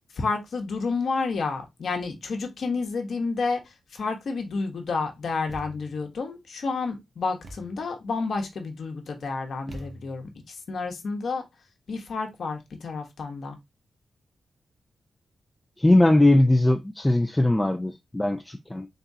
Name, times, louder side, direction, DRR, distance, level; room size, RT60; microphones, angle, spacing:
voice 1, 0.1-11.4 11.9-13.6, left 4 dB, 65° left, 1.2 m, -30 dB
Thump thud, 5.5-6.0 7.4-7.9 9.7-10.4, right 1 dB, 45° right, 0.9 m, -43 dB
voice 2, 15.8-18.9, left 1 dB, 10° left, 0.5 m, -20 dB
3.9 x 3.5 x 2.7 m
wide cardioid pair, 105°, 0 cm